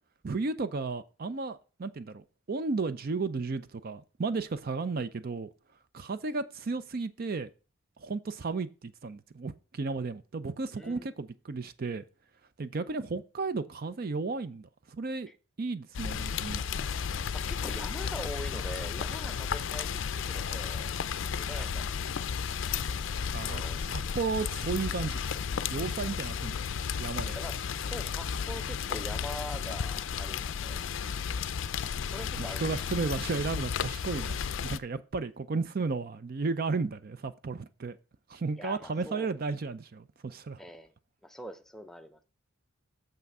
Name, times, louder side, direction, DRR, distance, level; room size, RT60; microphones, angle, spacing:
voice 1, 0.2-2.2 2.5-5.5 5.9-7.5 8.0-12.0 12.6-15.3 15.6-16.6 23.3-25.2 25.7-26.6 27.0-27.4 32.4-38.0 38.3-40.6, right 4 dB, 45° right, 0.5 m, -34 dB
voice 2, 10.7-11.1 15.3-15.4 17.3-20.0 20.3-21.9 23.4-23.9 27.3-30.8 32.0-32.8 38.6-39.3 40.6-40.9 41.2-42.2, equal, ahead, 0.5 m, -43 dB
Rain, 15.9-34.8, left 6 dB, 60° left, 0.4 m, -33 dB
6.8 x 5.9 x 5.3 m
head